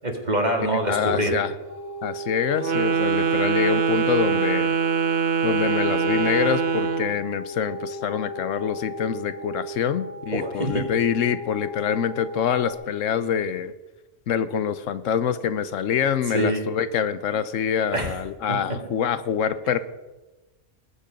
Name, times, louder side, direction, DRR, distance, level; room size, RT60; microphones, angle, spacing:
voice 1, 0.0-1.4 10.3-10.9 16.3-16.7 17.9-18.1 18.5-18.8, right 1 dB, 35° right, 3 dB, 2.1 m, -25 dB
voice 2, 0.9-1.5 2.0-4.8 5.4-13.7 14.3-19.8, left 8 dB, 85° left, 14 dB, 1.1 m, -25 dB
sound 1, 1.7-12.7, left 2 dB, 60° left, 1.9 m, -37 dB
Wind instrument woodwind instrument, 2.6-7.2, right 6 dB, 50° right, 1.0 m, -23 dB
20.0 x 8.3 x 5.1 m, 1.1 s
omnidirectional pair, 1.3 m